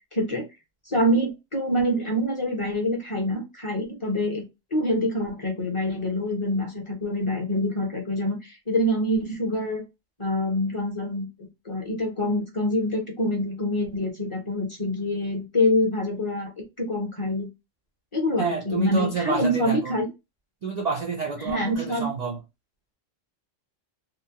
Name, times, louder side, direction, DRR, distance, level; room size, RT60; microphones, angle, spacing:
voice 1, 0.1-0.5 0.9-4.5 4.7-9.8 10.2-16.5 16.8-17.5 18.1-20.1 21.4-22.1, left 1 dB, 30° left, 0.6 m, -26 dB
voice 2, 18.4-19.9 20.6-22.4, right 5 dB, 70° right, 0.4 m, -29 dB
2.8 x 2.1 x 2.7 m
omnidirectional pair, 1.3 m